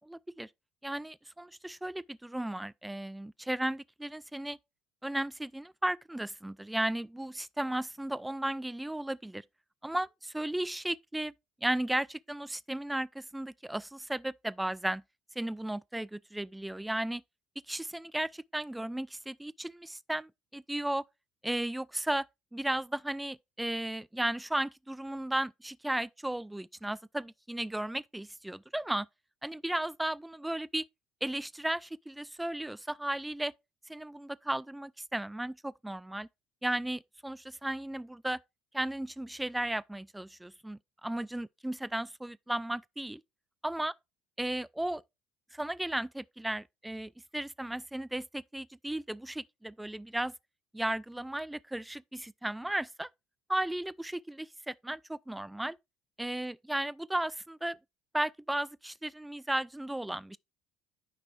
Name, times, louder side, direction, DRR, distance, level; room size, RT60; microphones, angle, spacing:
voice 1, 0.0-0.5 0.8-4.6 5.0-9.4 9.8-11.3 11.6-15.0 15.4-17.2 17.7-21.0 21.4-22.3 22.5-29.1 29.4-30.8 31.2-33.5 33.9-36.3 36.6-38.4 38.7-43.2 43.6-43.9 44.4-45.0 45.5-50.3 50.7-53.1 53.5-55.8 56.2-57.8 58.1-60.4, right 1 dB, 5° right, 0.3 m, -35 dB
9.6 x 6.5 x 2.4 m
figure-of-eight pair, 60°, 0 cm